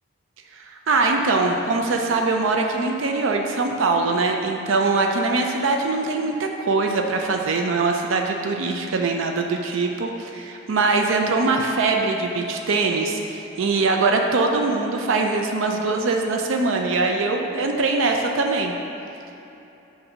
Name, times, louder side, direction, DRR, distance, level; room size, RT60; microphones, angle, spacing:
voice 1, 0.5-18.7, right 3 dB, 75° right, 2 dB, 0.4 m, -22 dB
7.8 x 2.7 x 6.0 m, 2.9 s
head